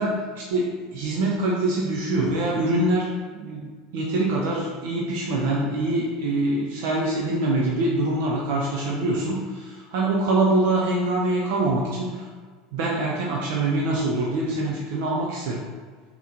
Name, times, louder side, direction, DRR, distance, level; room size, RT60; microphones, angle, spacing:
voice 1, 0.0-3.1 3.3-9.4 9.9-12.3 12.7-15.6, right 2 dB, 60° right, -3 dB, 0.5 m, -24 dB
4.0 x 2.9 x 3.9 m, 1.5 s
figure-of-eight pair, 75°, 0 cm